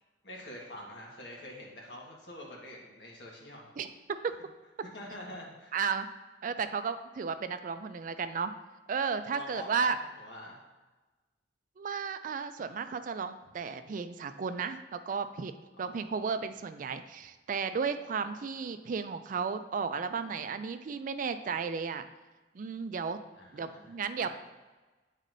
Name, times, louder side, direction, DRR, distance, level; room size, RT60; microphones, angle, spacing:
voice 1, 0.2-3.7 4.8-5.7 9.3-10.6 15.7-16.1 23.3-23.9 24.2-24.3, left 1 dB, 80° left, -2 dB, 1.5 m, -46 dB
voice 2, 5.7-6.1 6.4-8.5 8.9-10.0 11.8-15.5 15.8-22.1 22.5-23.2 23.5-24.3, right 5 dB, 50° right, 10 dB, 0.3 m, -34 dB
9.0 x 4.1 x 2.6 m, 1.2 s
head